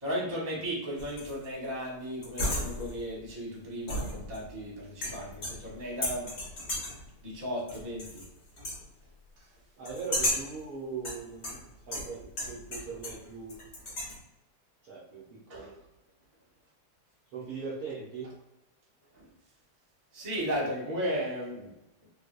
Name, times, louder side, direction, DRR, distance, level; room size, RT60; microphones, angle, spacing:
voice 1, 0.0-6.3 7.2-8.0 15.5-15.7 20.1-21.7, equal, 30° right, -5 dB, 0.7 m, -35 dB
sound 1, 1.0-1.4 2.2-3.1 3.9-4.6 5.0-5.7 6.0-7.1 7.7-8.3 8.6-8.8 9.8-10.6 11.0-13.2 13.5-14.2, left 1 dB, 50° left, 0.8 m, -34 dB
voice 2, 9.8-13.6 14.8-15.7 17.3-18.3, right 4 dB, 85° right, -5 dB, 0.8 m, -40 dB
3.7 x 2.5 x 2.4 m, 0.90 s
omnidirectional pair, 2.4 m